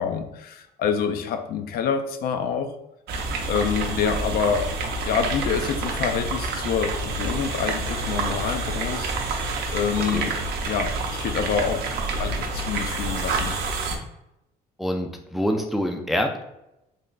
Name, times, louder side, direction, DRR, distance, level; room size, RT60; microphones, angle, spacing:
voice 1, 0.0-2.7 3.5-4.7 5.1-9.2 9.7-10.3 10.7-11.9 12.1-13.5, left 7 dB, 65° left, 7 dB, 0.4 m, -26 dB
sound 1, 3.1-14.0, right 3 dB, 70° right, 0.6 m, -28 dB
voice 2, 14.8-16.4, equal, ahead, 3 dB, 0.3 m, -26 dB
3.3 x 2.1 x 3.8 m, 0.87 s
cardioid pair, 110°, 17 cm